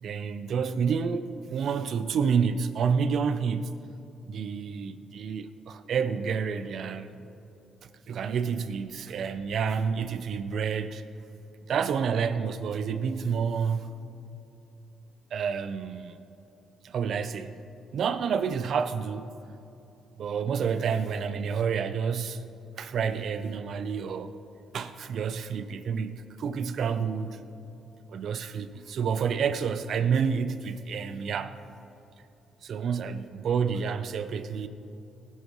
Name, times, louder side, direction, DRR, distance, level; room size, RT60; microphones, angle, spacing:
voice 1, 0.0-3.8 4.3-7.1 8.1-11.0 11.7-13.9 15.3-16.2 16.8-17.6 17.9-19.3 20.2-22.4 22.8-24.4 24.7-27.4 28.1-31.6 32.6-34.7, right 6 dB, 65° right, 0.6 m, -29 dB
18.5 x 11.0 x 3.1 m
cardioid pair, 90°, 0 cm